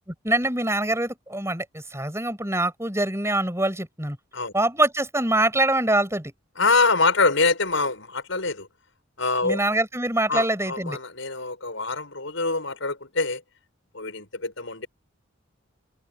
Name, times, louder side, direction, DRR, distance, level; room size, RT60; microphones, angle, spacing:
voice 1, 0.2-4.2 4.5-6.3 9.4-11.0, right 1 dB, 15° right, 6.8 m, -24 dB
voice 2, 6.6-8.7 9.2-9.6 10.3-13.4 13.9-14.9, left 3 dB, 70° left, 6.0 m, -24 dB
open air
head